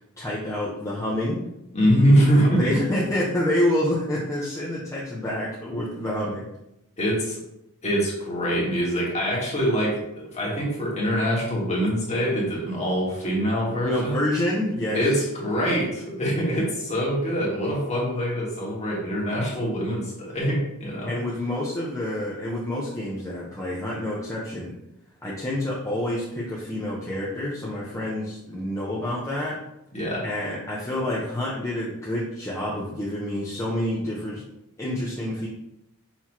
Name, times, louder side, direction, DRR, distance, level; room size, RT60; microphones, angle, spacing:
voice 1, 0.0-1.5 2.5-6.5 13.8-15.0 21.1-24.7 25.2-29.6 30.2-34.4 34.8-35.5, left 1 dB, 15° left, -6 dB, 0.6 m, -28 dB
voice 2, 1.7-2.8 7.0-7.4 7.8-14.2 14.9-21.2 29.9-30.2, equal, 30° left, -4 dB, 1.5 m, -24 dB
5.7 x 2.9 x 3.0 m, 0.85 s
head